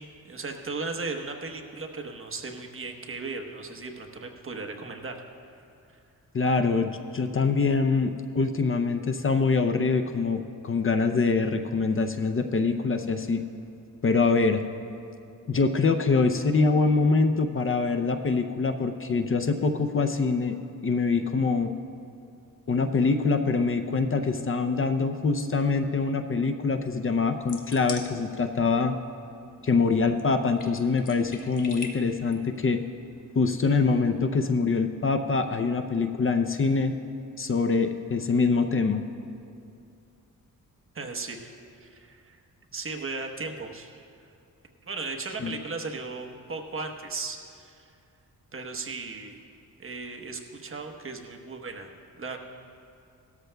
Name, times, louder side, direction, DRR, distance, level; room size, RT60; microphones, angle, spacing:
voice 1, 0.0-5.2 5.9-6.0 40.9-42.4 42.7-44.1 44.8-47.9 48.5-49.4 49.8-51.9 52.1-52.4, right 3 dB, 40° right, 3 dB, 1.1 m, -36 dB
voice 2, 6.3-13.4 14.0-14.6 15.5-20.5 20.8-21.7 22.7-29.0 29.6-32.8 33.3-36.9 37.4-39.0 45.4-45.5, left 4 dB, 40° left, 7 dB, 0.6 m, -24 dB
sound 1, 26.7-34.2, left 4 dB, 60° left, 1.3 m, -46 dB
18.0 x 13.0 x 2.3 m, 2.5 s
cardioid pair, 90°, 35 cm